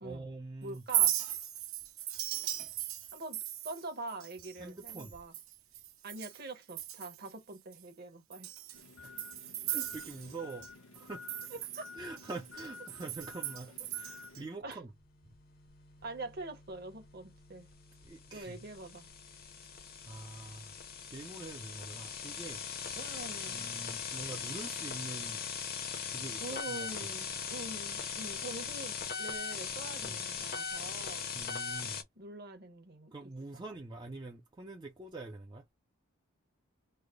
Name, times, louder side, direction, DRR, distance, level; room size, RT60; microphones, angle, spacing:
voice 1, 0.0-0.8 2.4-2.8 4.6-5.1 9.0-9.3 9.7-10.7 10.9-11.5 12.0-14.9 18.0-18.6 20.0-20.8 21.0-22.6 23.5-25.4 26.1-26.9 30.0-30.2 31.3-32.0 33.1-35.6, right 3 dB, 20° right, 0.4 m, -45 dB
voice 2, 0.6-1.1 3.1-5.3 6.0-8.5 11.5-11.9 14.6-14.8 16.0-17.7 18.3-19.1 23.0-23.7 26.4-31.3 32.2-33.1, right 2 dB, 45° right, 0.9 m, -44 dB
Chink clink, 0.7-6.4 6.7-7.3 7.7-7.8 8.3-10.7 10.9-14.4, right 12 dB, 75° right, 1.0 m, -37 dB
sound 1, 8.7-14.5, left 5 dB, 85° left, 0.8 m, -51 dB
sound 2, 15.1-32.0, left 6 dB, 45° left, 0.7 m, -40 dB
3.2 x 2.1 x 3.5 m
head